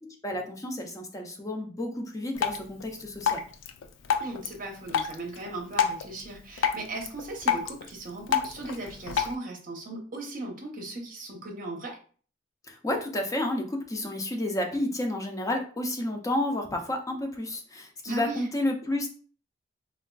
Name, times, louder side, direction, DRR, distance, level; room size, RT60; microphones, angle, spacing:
voice 1, 0.0-3.4 12.6-19.1, left 1 dB, 15° left, 3 dB, 0.4 m, -31 dB
Drip, 2.3-9.3, left 7 dB, 85° left, 0.3 m, -31 dB
voice 2, 4.2-12.0 18.0-18.4, right 2 dB, 45° right, 1 dB, 0.7 m, -37 dB
3.4 x 2.3 x 2.2 m, 0.42 s
head